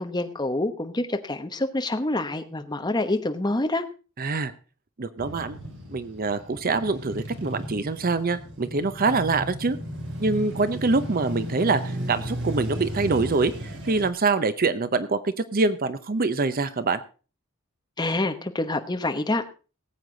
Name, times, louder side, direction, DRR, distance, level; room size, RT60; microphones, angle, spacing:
voice 1, 0.0-3.8 18.0-19.4, left 2 dB, 20° left, 7 dB, 1.0 m, -27 dB
voice 2, 4.2-4.5 5.0-5.6 5.9-9.8 10.2-17.0, right 3 dB, 40° right, 13 dB, 0.7 m, -25 dB
Male speech man speaking / Motorcycle / Idling, 5.2-14.1, equal, 55° right, 2.9 m, -35 dB
18.5 x 8.1 x 3.9 m, 0.35 s
head